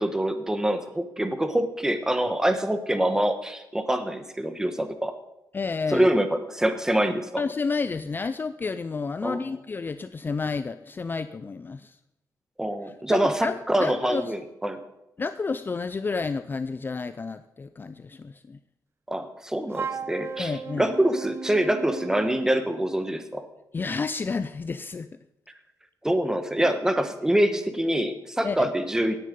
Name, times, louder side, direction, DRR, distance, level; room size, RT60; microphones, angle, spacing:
voice 1, 0.0-5.1 5.9-7.3 9.2-9.4 12.6-14.8 19.1-20.5 20.8-23.4 26.0-29.2, right 1 dB, 10° right, 8 dB, 1.4 m, -25 dB
voice 2, 5.5-6.1 7.4-12.0 12.8-14.3 15.2-18.6 20.4-20.9 23.7-25.1 28.4-28.7, left 4 dB, 30° left, 12 dB, 0.5 m, -30 dB
Wind instrument woodwind instrument, 19.7-22.6, right 5 dB, 35° right, 0.6 m, -35 dB
17.0 x 9.9 x 5.4 m, 0.90 s
wide cardioid pair, 135°, 7 cm